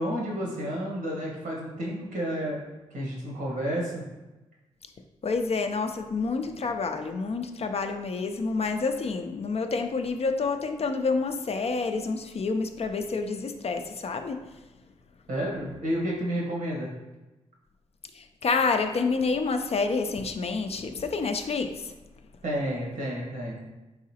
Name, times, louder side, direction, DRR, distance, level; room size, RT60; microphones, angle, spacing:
voice 1, 0.0-2.6 2.9-4.0 15.3-16.9 22.4-23.6, equal, 80° right, -4 dB, 1.4 m, -30 dB
voice 2, 5.2-14.4 18.2-21.7, left 4 dB, 50° left, 6 dB, 0.5 m, -28 dB
4.0 x 3.7 x 2.8 m, 1.1 s
supercardioid pair, 45°, 14 cm